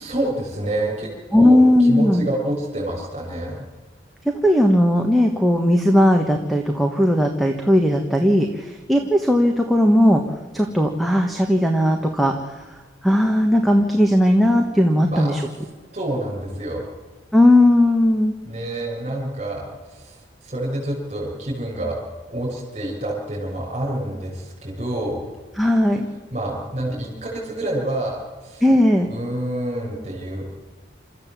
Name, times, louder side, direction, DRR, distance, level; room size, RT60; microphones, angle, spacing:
voice 1, 0.0-1.6 1.9-3.6 15.1-15.4 15.9-16.9 18.5-19.6 19.9-21.9 22.3-25.2 26.3-28.6 29.0-30.5, right 1 dB, 30° right, -3 dB, 6.6 m, -28 dB
voice 2, 1.3-2.3 4.2-10.2 10.5-12.6 13.0-15.4 17.3-18.3 25.6-26.1 28.6-29.1, left 1 dB, ahead, 1 dB, 1.4 m, -17 dB
28.0 x 14.0 x 7.5 m, 1.4 s
head